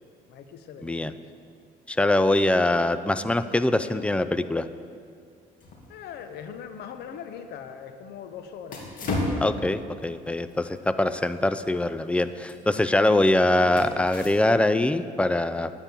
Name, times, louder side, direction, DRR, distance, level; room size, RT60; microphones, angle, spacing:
voice 1, 0.3-1.2 5.9-8.9, left 7 dB, 75° left, 9 dB, 0.9 m, -41 dB
voice 2, 0.8-1.1 1.9-4.7 9.4-15.7, left 1 dB, 5° left, 12 dB, 0.4 m, -23 dB
sound 1, 5.6-14.8, left 2 dB, 55° left, 2.5 m, -37 dB
9.7 x 8.8 x 6.8 m, 2.4 s
cardioid pair, 110°, 17 cm